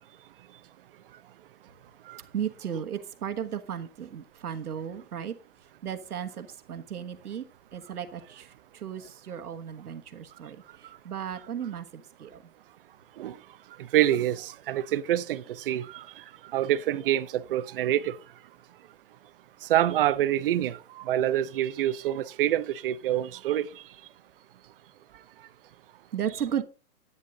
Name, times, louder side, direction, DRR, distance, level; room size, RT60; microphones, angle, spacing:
voice 1, 2.3-5.3 5.8-7.5 7.7-12.4 26.1-26.6, right 9 dB, 90° right, 1.5 m, -35 dB
voice 2, 13.9-16.0 16.5-18.1 19.7-23.7, right 12 dB, 40° right, 0.7 m, -26 dB
11.5 x 9.6 x 3.7 m
hypercardioid pair, 150°, 44 cm